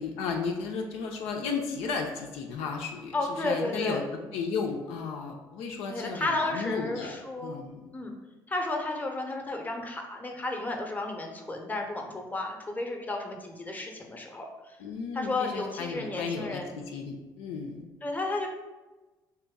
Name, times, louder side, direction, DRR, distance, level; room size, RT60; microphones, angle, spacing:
voice 1, 0.0-7.1 7.4-7.8 14.8-17.9, left 5 dB, 70° left, 1 dB, 0.4 m, -34 dB
voice 2, 3.1-4.0 5.9-7.6 7.9-8.1 8.5-14.5 15.1-16.8 18.0-18.5, left 2 dB, 15° left, 2 dB, 0.7 m, -32 dB
3.1 x 2.9 x 3.5 m, 1.2 s
hypercardioid pair, 50°, 11 cm